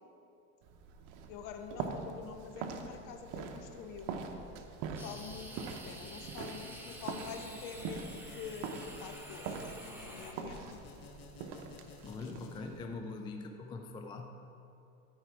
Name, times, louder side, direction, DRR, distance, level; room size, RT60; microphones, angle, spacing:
sound 1, 0.6-12.8, right 5 dB, 60° right, 0.9 m, -44 dB
voice 1, 1.3-4.1 4.9-9.6 10.0-10.7, left 7 dB, 50° left, 6 dB, 1.0 m, -46 dB
sound 2, 5.0-12.6, left 5 dB, 85° left, 1.2 m, -54 dB
sound 3, 5.0-10.3, right 1 dB, 5° right, 1.1 m, -49 dB
voice 2, 12.0-14.3, left 3 dB, 10° left, 4 dB, 0.3 m, -43 dB
13.0 x 4.7 x 4.6 m, 2.7 s
hypercardioid pair, 95°, 43 cm